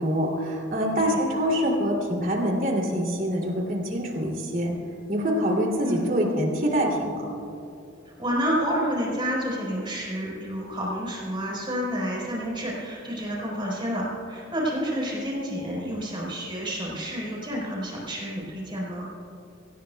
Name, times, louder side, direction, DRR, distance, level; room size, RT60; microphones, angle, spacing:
voice 1, 0.0-4.7 5.1-7.3, equal, 45° right, -1 dB, 2.8 m, -25 dB
voice 2, 0.7-1.2 5.8-6.1 8.0-19.1, equal, 25° right, -4 dB, 4.2 m, -29 dB
24.0 x 17.5 x 2.3 m, 2.8 s
head